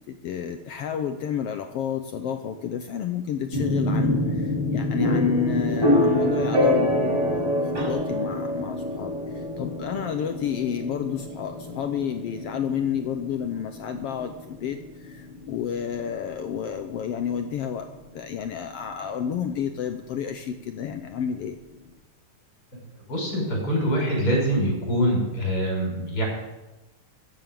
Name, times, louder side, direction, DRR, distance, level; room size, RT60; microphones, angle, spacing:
voice 1, 0.0-17.9 18.1-21.6, left 8 dB, 70° left, 7 dB, 1.5 m, -30 dB
sound 1, 3.5-17.3, left 1 dB, 20° right, 5.6 m, -26 dB
voice 2, 23.1-26.2, equal, 30° left, -1 dB, 6.0 m, -24 dB
14.0 x 8.7 x 7.7 m, 1.0 s
omnidirectional pair, 3.4 m